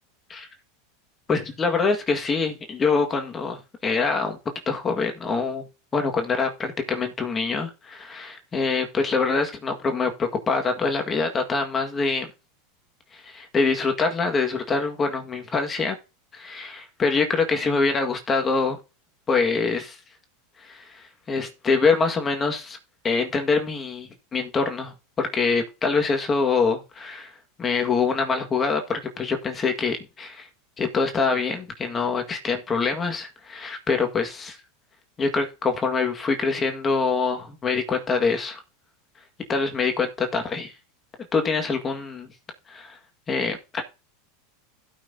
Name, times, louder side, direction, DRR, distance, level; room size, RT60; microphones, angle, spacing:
voice 1, 1.3-4.4 4.7-5.6 5.9-12.3 13.1-16.0 16.3-18.8 19.3-20.0 20.6-22.8 23.0-27.3 27.6-30.5 30.8-34.6 35.2-38.6 39.5-40.7 41.3-42.3 42.7-43.0 43.3-43.8, left 4 dB, 25° left, 1.7 m, -25 dB
16.0 x 5.8 x 2.7 m
supercardioid pair, 125°, 0 cm